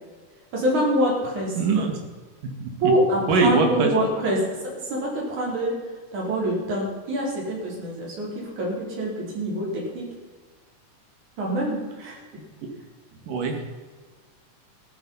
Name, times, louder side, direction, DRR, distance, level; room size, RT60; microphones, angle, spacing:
voice 1, 0.5-1.6 2.8-5.8 6.1-10.1 11.4-12.2, right 1 dB, 65° right, -3 dB, 6.3 m, -25 dB
voice 2, 1.6-1.9 2.4-2.8 3.3-3.9 13.3-13.6, right 4 dB, 85° right, 3 dB, 3.9 m, -22 dB
16.0 x 12.5 x 5.7 m, 1.4 s
omnidirectional pair, 3.7 m